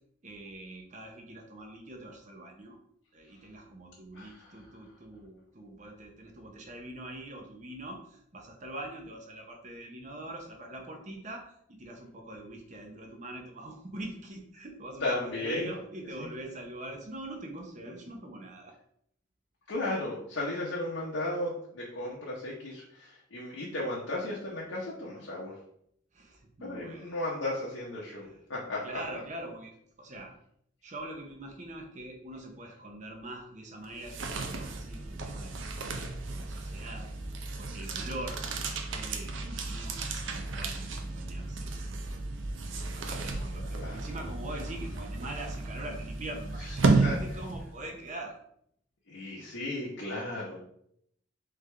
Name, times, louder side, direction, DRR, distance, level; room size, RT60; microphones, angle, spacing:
voice 1, 0.2-2.8 3.1-18.7 26.1-27.1 28.2-28.4 28.8-29.7 30.0-30.3 30.8-35.6 35.9-37.1 37.6-38.4 38.7-41.7 42.9-48.4, right 1 dB, 40° right, 2 dB, 0.7 m, -43 dB
voice 2, 4.1-4.5 15.0-15.7 16.2-16.3 19.7-25.6 26.6-29.0 43.7-44.2 47.0-47.2 49.1-50.6, left 2 dB, 80° left, -4 dB, 0.8 m, -35 dB
sound 1, 33.8-47.9, right 3 dB, 75° right, 0.6 m, -33 dB
3.6 x 3.4 x 3.3 m, 0.71 s
head